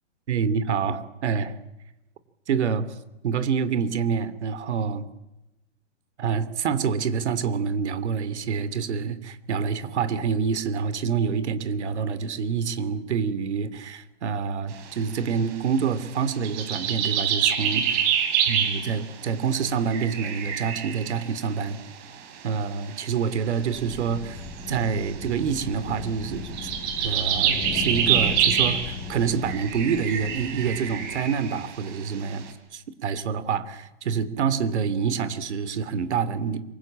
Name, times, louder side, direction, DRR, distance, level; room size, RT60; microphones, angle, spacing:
voice 1, 0.3-1.5 2.5-2.8 3.2-5.0 6.2-18.0 18.5-21.8 22.4-26.7 27.0-32.4 32.7-36.6, right 6 dB, 65° right, 15 dB, 3.1 m, -27 dB
sound 1, 16.4-18.9 19.9-21.5 22.0-22.1 22.9-23.0 24.6-25.1 26.5-29.0 29.5-31.9, right 8 dB, 25° right, 4.3 m, -26 dB
sound 2, 23.5-31.6, left 4 dB, 10° left, 7.8 m, -37 dB
27.0 x 24.5 x 8.9 m, 0.95 s
hypercardioid pair, 165°, 36 cm